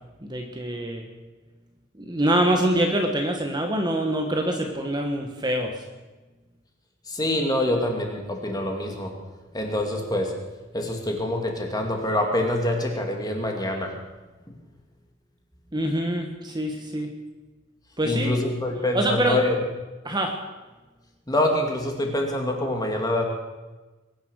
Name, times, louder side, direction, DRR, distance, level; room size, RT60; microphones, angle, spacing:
voice 1, 0.2-1.1 2.0-5.7 15.7-17.1 18.0-18.4 18.9-19.4 20.0-20.3, right 1 dB, 20° right, 3 dB, 1.4 m, -25 dB
voice 2, 7.1-9.1 9.5-10.3 10.7-13.9 18.0-19.6 21.3-23.2, left 1 dB, 20° left, 2 dB, 2.5 m, -25 dB
22.0 x 10.5 x 6.4 m, 1.2 s
head